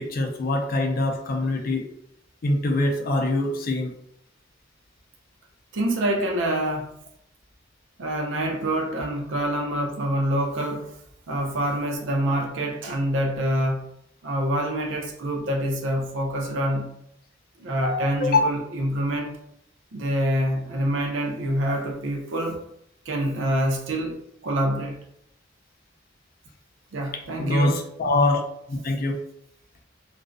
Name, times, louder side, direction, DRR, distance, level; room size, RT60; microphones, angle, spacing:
voice 1, 0.0-1.9 2.4-3.9 17.8-18.5 27.4-28.4 28.7-29.2, left 2 dB, 50° left, 2 dB, 0.4 m, -24 dB
voice 2, 5.7-6.9 8.0-10.9 11.3-13.9 14.2-16.9 17.6-19.4 19.9-22.6 23.1-25.0 26.9-27.8, right 1 dB, 80° right, 1 dB, 0.6 m, -26 dB
2.4 x 2.1 x 2.4 m, 0.74 s
head